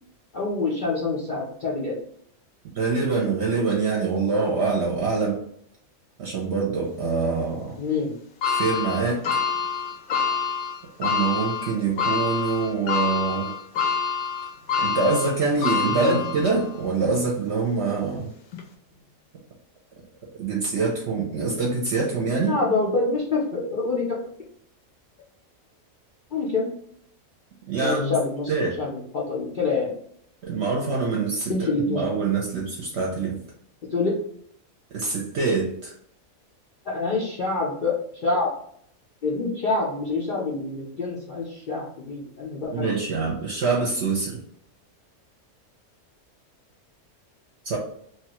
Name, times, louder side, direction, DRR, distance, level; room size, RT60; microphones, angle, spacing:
voice 1, 0.3-2.0 7.8-8.2 14.6-14.9 15.9-16.2 22.5-24.2 26.3-26.7 27.8-29.9 31.5-32.1 33.8-34.1 36.8-38.5 39.2-42.9, left 3 dB, 65° left, -4 dB, 0.5 m, -26 dB
voice 2, 2.7-5.4 6.2-7.8 8.5-9.3 11.0-13.5 14.8-18.3 20.4-22.6 27.7-28.1 28.5-28.8 30.4-33.4 34.9-35.9 42.7-44.4 47.6-47.8, right 4 dB, 60° right, -2 dB, 0.8 m, -25 dB
sound 1, 8.4-16.8 17.3-17.4 18.5-18.6, left 6 dB, 85° left, 1.1 m, -27 dB
3.0 x 2.3 x 2.9 m, 0.67 s
omnidirectional pair, 1.5 m